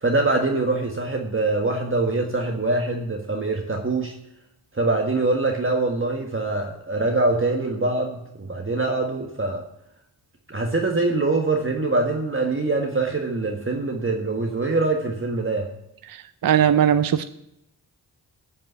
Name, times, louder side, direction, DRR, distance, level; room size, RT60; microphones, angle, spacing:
voice 1, 0.0-4.1 4.8-9.6 10.5-15.7, right 2 dB, 30° right, 2 dB, 1.5 m, -24 dB
voice 2, 16.4-17.3, right 9 dB, 55° right, 12 dB, 0.6 m, -18 dB
13.0 x 5.4 x 8.1 m, 0.81 s
cardioid pair, 60°, 42 cm